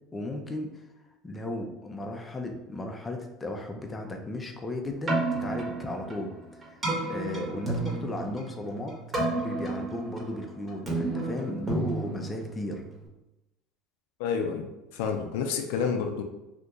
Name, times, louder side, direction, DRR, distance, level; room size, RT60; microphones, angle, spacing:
voice 1, 0.1-0.7 1.2-6.3 6.7-6.8 7.0-9.0 9.4-12.8, left 1 dB, 15° left, 3 dB, 0.6 m, -35 dB
Keyboard (musical), 4.9-13.1, right 2 dB, 25° right, 1.2 m, -32 dB
voice 2, 14.2-16.2, left 6 dB, 80° left, 4 dB, 0.4 m, -29 dB
2.9 x 2.6 x 3.5 m, 0.96 s
supercardioid pair, 105°, 0 cm